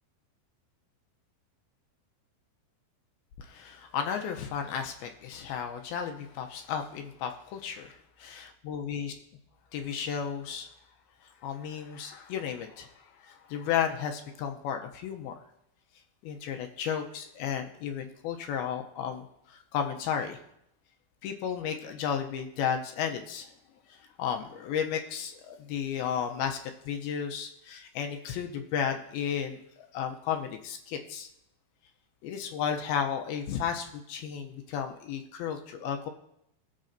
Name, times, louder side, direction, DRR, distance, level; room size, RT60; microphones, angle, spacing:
voice 1, 3.4-9.1 9.7-10.7 11.4-15.4 16.2-20.4 21.2-23.5 23.9-26.6 26.9-31.3 32.2-36.1, left 8 dB, 80° left, 4 dB, 2.3 m, -33 dB
20.0 x 7.3 x 2.6 m, 0.77 s
omnidirectional pair, 5.0 m